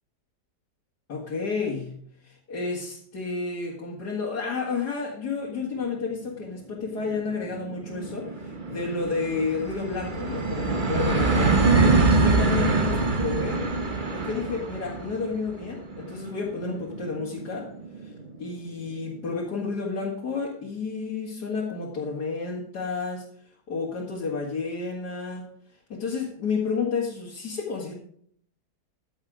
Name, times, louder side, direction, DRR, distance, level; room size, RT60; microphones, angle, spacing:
voice 1, 1.1-2.0 2.2-11.6 12.2-13.6 14.1-17.7 18.0-18.1 18.4-23.3 23.7-25.5 25.9-27.9, left 4 dB, 70° left, -4 dB, 2.6 m, -31 dB
sound 1, 6.0-6.1 6.4-6.5 6.7-18.2, right 3 dB, 30° right, 1.5 m, -25 dB
14.5 x 7.3 x 5.0 m, 0.63 s
omnidirectional pair, 1.8 m